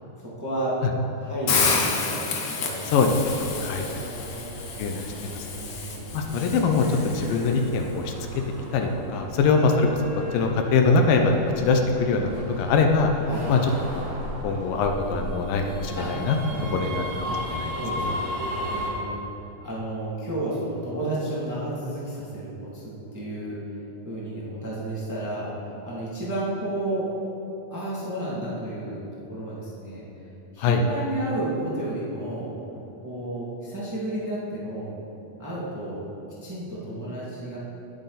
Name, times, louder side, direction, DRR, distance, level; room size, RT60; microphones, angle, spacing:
voice 1, 0.4-0.7 1.2-3.0 3.5-4.5 5.1-6.0 9.3-9.5 13.2-13.5 15.9-16.1 16.4-18.4 18.7-19.0 19.6-22.8 23.1-23.5 24.0-25.5 25.8-27.1 27.7-29.0 29.3-30.0 30.5-32.5 33.0-34.9 35.4-36.0 36.4-37.6, right 1 dB, 5° right, -7 dB, 1.7 m, -32 dB
Hiss, 1.5-7.5, left 5 dB, 60° left, 1.6 m, -29 dB
sound 1, 3.0-18.9, equal, 40° right, 2.8 m, -36 dB
voice 2, 4.8-5.5 6.1-6.9 7.1-8.1 8.7-9.9 10.3-12.3 12.6-13.1 13.5-14.0 14.4-16.4 16.7-17.0 17.5-17.7 18.1-18.2 30.6-30.8, left 4 dB, 80° left, 3 dB, 2.5 m, -22 dB
18.5 x 7.9 x 4.1 m, 2.9 s
omnidirectional pair, 4.0 m